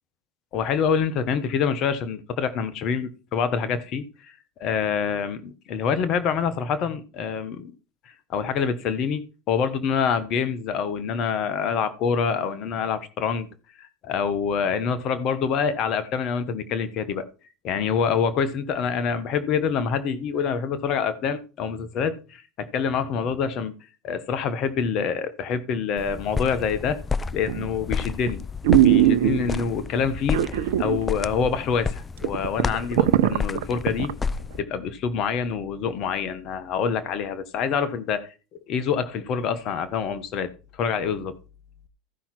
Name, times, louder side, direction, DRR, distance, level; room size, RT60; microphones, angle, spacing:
voice 1, 0.5-4.3 4.6-7.7 8.3-13.5 13.8-17.3 17.6-23.7 24.0-27.0 27.3-28.4 28.8-34.1 34.6-38.3 38.7-40.5 40.8-41.4, left 6 dB, 50° left, 1.2 m, -26 dB
sound 1, 26.0-34.6, left 5 dB, 25° left, 0.4 m, -31 dB
sound 2, 27.5-27.8 28.3-28.4 28.6-29.7 30.3-31.0 31.3-31.4 31.9-32.0 32.2-34.1 34.6-34.7, right 12 dB, 75° right, 0.6 m, -20 dB
14.5 x 5.8 x 4.4 m
hypercardioid pair, 80°, 0 cm